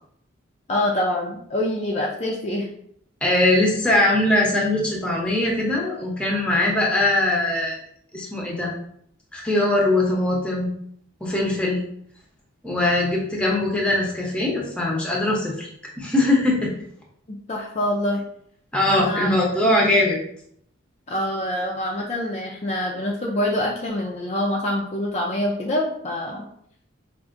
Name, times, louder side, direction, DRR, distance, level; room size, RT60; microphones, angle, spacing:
voice 1, 0.7-2.7 17.5-18.2 18.9-19.3 19.6-19.9 21.1-26.5, left 1 dB, 35° left, -1 dB, 0.4 m, -25 dB
voice 2, 3.2-7.8 8.1-8.7 9.3-10.7 11.2-11.8 12.6-15.7 16.0-16.7 18.7-20.2, left 1 dB, 5° left, -2 dB, 0.7 m, -21 dB
4.8 x 2.5 x 2.5 m, 0.68 s
head